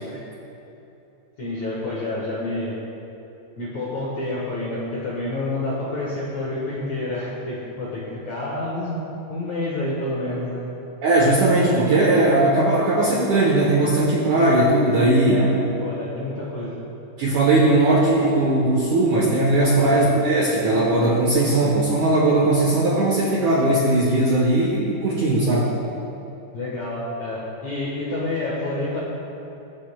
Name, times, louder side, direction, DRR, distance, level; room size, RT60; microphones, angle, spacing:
voice 1, 1.4-2.8 3.6-9.0 9.3-10.6 15.3-16.8 19.9-20.1 26.5-29.0, left 2 dB, 70° left, -6 dB, 1.7 m, -28 dB
voice 2, 11.0-15.4 17.2-25.7, right 2 dB, 75° right, -4 dB, 1.8 m, -18 dB
20.0 x 8.9 x 2.2 m, 3.0 s
omnidirectional pair, 4.9 m